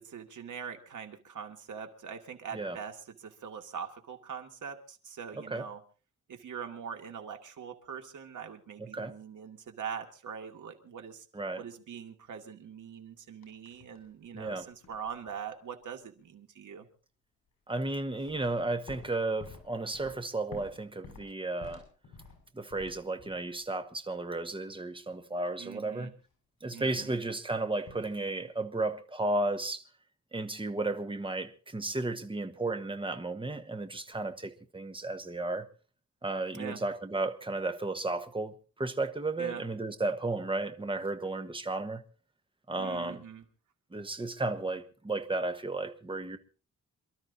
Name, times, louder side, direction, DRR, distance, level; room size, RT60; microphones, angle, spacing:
voice 1, 0.0-5.8 6.3-11.3 11.6-16.9 25.6-26.1 26.7-27.1 36.5-36.8 39.4-39.6 42.8-43.4, right 7 dB, 80° right, 2.2 m, -43 dB
voice 2, 8.8-9.1 11.3-11.6 14.3-14.7 17.7-21.8 22.5-26.1 26.6-29.8 30.3-35.6 36.2-38.5 38.8-42.0 42.7-43.2 43.9-46.4, right 2 dB, 15° right, 1.2 m, -33 dB
sound 1, 13.4-14.1 14.4-15.5 18.1-23.5 26.9-27.4 27.8-28.2, left 4 dB, 70° left, 6.5 m, -51 dB
27.5 x 13.0 x 2.7 m
wide cardioid pair, 130°, 30 cm